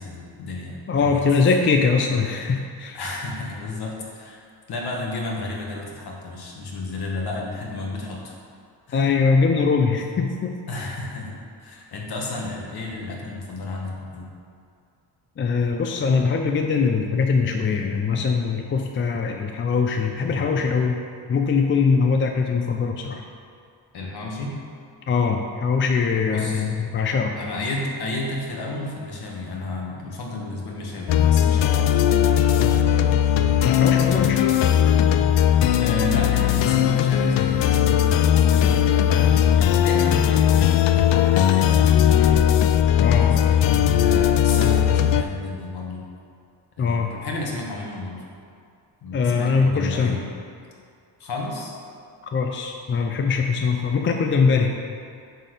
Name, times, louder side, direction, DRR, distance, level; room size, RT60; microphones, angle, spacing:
voice 1, 0.0-1.2 2.9-4.4 4.7-8.3 8.9-9.1 10.7-14.3 20.2-20.5 23.9-24.6 26.3-26.7 27.4-33.4 33.8-34.6 35.8-42.7 43.0-46.0 46.8-48.2 49.0-50.3 51.2-51.7, left 2 dB, 60° left, -1 dB, 1.6 m, -32 dB
voice 2, 0.9-3.0 8.9-10.5 15.4-21.0 21.3-23.2 25.1-27.3 33.6-34.5 43.0-43.3 46.8-47.1 49.1-50.2 52.3-54.7, left 5 dB, 30° left, 3 dB, 0.4 m, -22 dB
sound 1, 31.1-45.2, left 10 dB, 80° left, 0.5 m, -18 dB
9.1 x 4.2 x 6.6 m, 2.3 s
wide cardioid pair, 180°, 43 cm